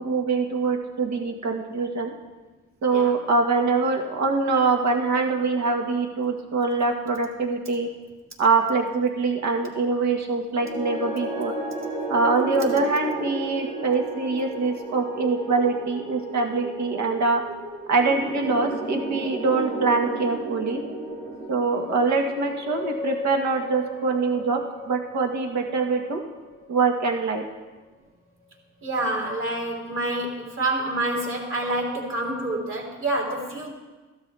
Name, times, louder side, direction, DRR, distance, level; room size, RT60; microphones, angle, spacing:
voice 1, 0.0-2.1 2.8-7.9 8.4-11.5 12.1-17.4 17.9-20.8 21.5-24.6 24.9-26.2 26.7-27.4, right 4 dB, 65° right, 2 dB, 1.8 m, -24 dB
sound 1, 10.5-26.8, right 1 dB, 90° right, 3.8 m, -34 dB
voice 2, 28.8-33.7, right 2 dB, 45° right, -2 dB, 3.6 m, -27 dB
15.0 x 12.5 x 3.5 m, 1.2 s
cardioid pair, 90°, 30 cm